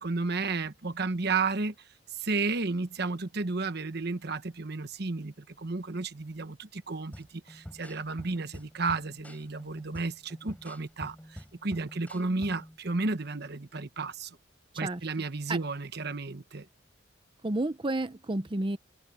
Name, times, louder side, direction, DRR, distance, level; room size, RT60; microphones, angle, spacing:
voice 1, 0.0-1.7 2.1-14.4 14.8-16.7, right 3 dB, 60° right, 1.2 m, -32 dB
sound 1, 7.1-12.8, equal, 10° left, 6.4 m, -47 dB
voice 2, 17.4-18.8, right 2 dB, 25° right, 0.8 m, -30 dB
head